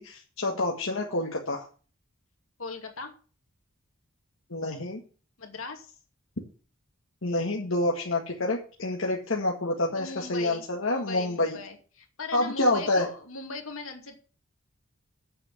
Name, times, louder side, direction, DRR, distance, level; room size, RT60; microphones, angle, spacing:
voice 1, 0.0-1.7 4.5-5.0 7.2-11.6 12.3-13.1, left 2 dB, 70° left, -1 dB, 1.8 m, -28 dB
voice 2, 2.6-3.1 5.4-5.9 10.0-14.2, left 3 dB, 90° left, 4 dB, 2.7 m, -39 dB
8.0 x 7.7 x 8.1 m, 0.38 s
head